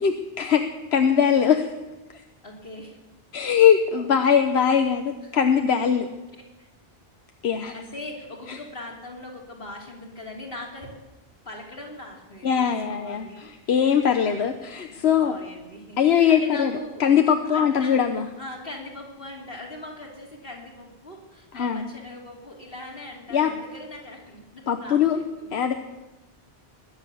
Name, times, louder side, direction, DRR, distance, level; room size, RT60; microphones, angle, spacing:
voice 1, 0.0-0.6 0.9-1.7 2.1-2.2 3.3-6.1 7.4-7.7 8.5-8.6 12.4-15.4 16.0-16.7 17.0-18.3 21.5-21.8 23.3-23.5 24.7-25.2 25.5-25.7, left 8 dB, 85° left, 6 dB, 1.2 m, -21 dB
voice 2, 2.4-3.0 4.0-4.1 5.2-5.3 6.4-6.7 7.7-11.0 11.5-13.5 13.8-13.9 14.2-14.5 14.9-17.0 17.5-18.0 18.4-25.5, left 1 dB, 65° left, -1 dB, 3.5 m, -41 dB
21.0 x 9.9 x 7.0 m, 1.1 s
omnidirectional pair, 1.0 m